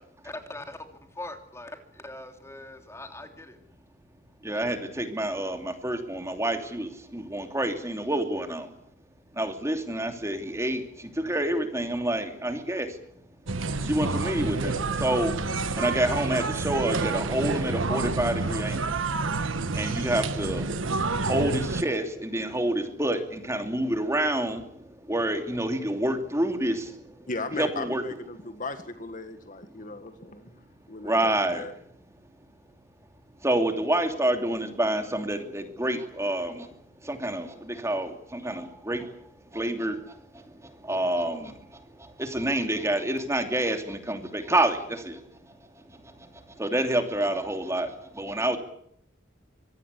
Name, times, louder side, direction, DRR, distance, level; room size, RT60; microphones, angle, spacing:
voice 1, 0.2-0.8 1.1-3.6, left 2 dB, 15° left, 5 dB, 3.1 m, -41 dB
voice 2, 4.4-8.7 9.3-13.0 13.8-19.0 19.3-20.8 21.2-27.3 27.6-28.0 31.0-31.7 33.4-36.8 37.0-39.1 39.5-41.6 42.0-45.2 45.9-48.6, right 1 dB, 15° right, 5 dB, 2.9 m, -28 dB
sound 1, 13.5-21.8, right 3 dB, 85° right, 1.4 m, -29 dB
voice 3, 27.3-30.5 30.9-31.7, left 3 dB, 40° left, 8 dB, 1.7 m, -37 dB
25.0 x 19.0 x 8.3 m, 0.70 s
head